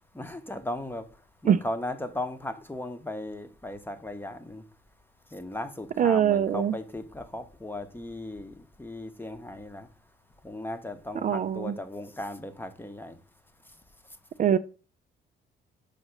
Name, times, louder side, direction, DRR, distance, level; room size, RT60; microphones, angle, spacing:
voice 1, 0.1-1.1 1.4-4.6 5.3-9.9 10.4-13.2, left 1 dB, 10° left, 9 dB, 0.8 m, -37 dB
voice 2, 6.0-6.7 11.2-11.7 14.4-14.6, right 9 dB, 40° right, 11 dB, 0.4 m, -23 dB
6.6 x 2.9 x 5.8 m, 0.36 s
cardioid pair, 90°, 20 cm